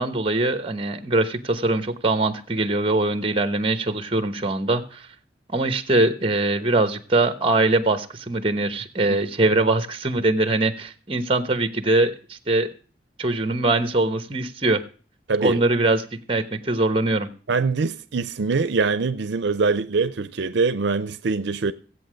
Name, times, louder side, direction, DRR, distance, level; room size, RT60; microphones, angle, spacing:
voice 1, 0.0-5.1 5.5-12.7 13.2-14.8 15.4-16.0 16.3-17.3, right 2 dB, 30° right, 1.0 m, -22 dB
voice 2, 15.3-15.6 17.5-21.7, right 4 dB, 70° right, 0.5 m, -23 dB
16.0 x 8.3 x 6.3 m
head